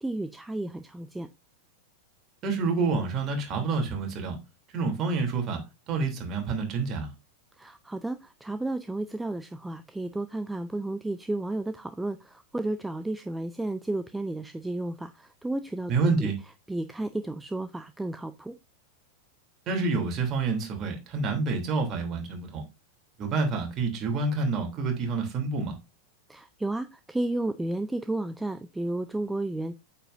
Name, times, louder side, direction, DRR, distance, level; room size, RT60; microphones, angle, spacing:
voice 1, 0.0-1.3 7.6-16.3 16.7-18.6 26.3-29.8, right 2 dB, 5° right, 0.5 m, -32 dB
voice 2, 2.4-4.3 4.7-5.6 5.9-7.1 15.9-16.4 19.7-22.6 23.2-25.7, right 4 dB, 30° right, 3.1 m, -28 dB
8.8 x 7.7 x 2.6 m
figure-of-eight pair, 90°, 0 cm